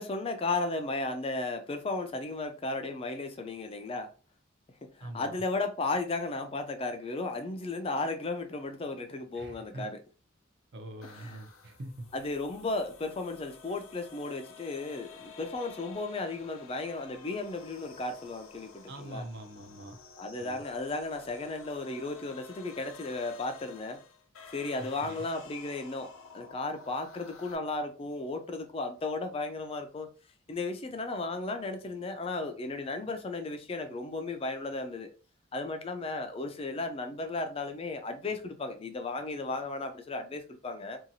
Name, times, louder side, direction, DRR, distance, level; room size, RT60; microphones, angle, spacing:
voice 1, 0.0-4.1 4.9-10.0 11.1-11.4 12.1-19.2 20.2-24.0 24.5-30.1 30.5-35.1 35.5-41.0, left 3 dB, 30° left, 0.3 m, -35 dB
voice 2, 5.0-5.4 9.3-9.9 10.7-12.1 18.9-20.0 20.4-20.6 24.8-25.2, right 1 dB, 55° right, 0.6 m, -43 dB
sound 1, 11.0-27.6, left 5 dB, 85° left, 0.5 m, -51 dB
2.8 x 2.3 x 2.6 m
head